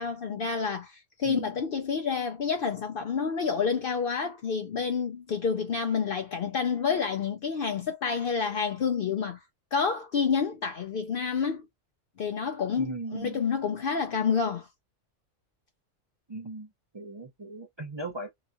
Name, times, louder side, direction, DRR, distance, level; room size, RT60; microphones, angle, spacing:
voice 1, 0.0-9.4 9.7-11.7 12.2-14.7, left 6 dB, 60° left, 0.6 m, -29 dB
voice 2, 12.8-13.4 16.3-16.7 16.9-18.3, right 2 dB, 35° right, 0.4 m, -38 dB
2.9 x 2.3 x 2.5 m
omnidirectional pair, 1.3 m